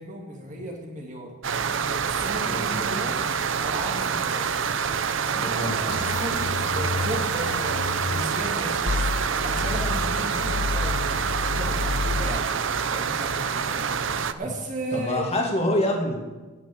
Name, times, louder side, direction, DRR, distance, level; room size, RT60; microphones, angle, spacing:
voice 1, 0.0-1.3 1.8-3.2 3.6-4.5 5.2-6.5 6.7-8.9 9.4-11.1 11.4-12.5 12.8-15.4, right 1 dB, 35° right, 0 dB, 2.5 m, -35 dB
sound 1, 1.4-14.3, right 6 dB, 70° right, 0.6 m, -26 dB
voice 2, 5.4-5.8 14.9-16.4, left 1 dB, 30° left, 0 dB, 2.3 m, -26 dB
sound 2, 5.9-8.2 8.9-12.4, left 3 dB, 60° left, 0.7 m, -30 dB
16.0 x 6.3 x 8.7 m, 1.3 s
head